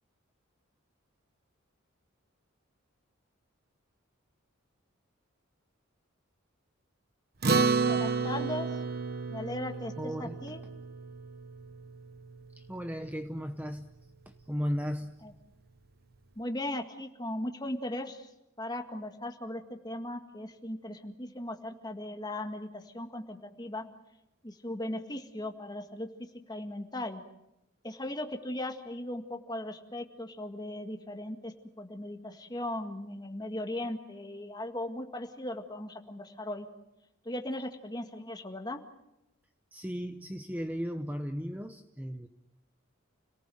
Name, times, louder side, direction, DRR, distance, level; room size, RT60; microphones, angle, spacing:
Acoustic guitar, 7.4-12.1, right 4 dB, 50° right, 1.2 m, -31 dB
voice 1, 7.8-8.7 9.3-10.6 15.2-15.3 16.4-18.3 18.6-23.8 24.4-27.2 27.8-36.7 37.3-38.8, left 1 dB, 20° left, 5 dB, 1.9 m, -38 dB
voice 2, 10.0-10.4 12.6-13.9 14.3-15.1 39.7-42.3, equal, 10° right, 7 dB, 0.8 m, -36 dB
30.0 x 18.5 x 7.8 m, 0.89 s
head